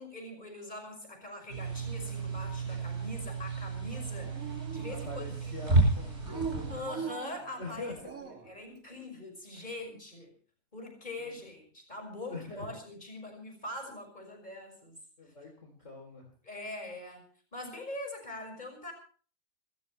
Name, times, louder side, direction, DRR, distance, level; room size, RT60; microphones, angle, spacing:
voice 1, 0.0-4.3 4.7-5.5 6.7-10.3 10.7-15.0 16.4-17.3 17.5-18.9, left 1 dB, 25° left, 4 dB, 5.9 m, -43 dB
sound 1, 1.5-6.8, right 2 dB, 40° right, 8.5 m, -31 dB
Dog, 3.9-5.4 6.2-8.6, right 6 dB, 55° right, 2.8 m, -42 dB
voice 2, 4.9-7.0 7.6-7.9 9.6-9.7 12.3-12.7 15.2-16.3, left 3 dB, 45° left, 2 dB, 3.8 m, -43 dB
27.0 x 14.5 x 3.2 m, 0.43 s
omnidirectional pair, 1.7 m